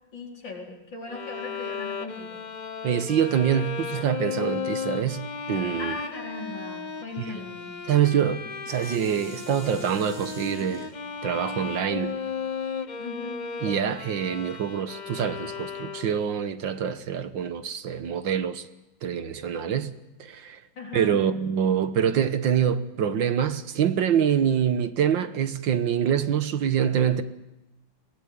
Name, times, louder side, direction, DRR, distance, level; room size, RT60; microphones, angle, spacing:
voice 1, 0.1-2.4 5.8-7.8 13.0-13.5 20.8-21.2, left 3 dB, 65° left, 5.2 m, -38 dB
Bowed string instrument, 1.1-16.4, left 5 dB, 50° left, 0.5 m, -35 dB
voice 2, 2.8-6.0 7.2-7.3 7.9-10.9 11.2-12.2 13.6-18.7 19.0-19.9 20.2-20.6 20.9-27.2, right 8 dB, 70° right, 1.9 m, -25 dB
Dishes pots and pans, 8.1-13.3 13.9-14.0, left 1 dB, 5° left, 5.2 m, -47 dB
23.0 x 18.5 x 9.7 m
omnidirectional pair, 2.2 m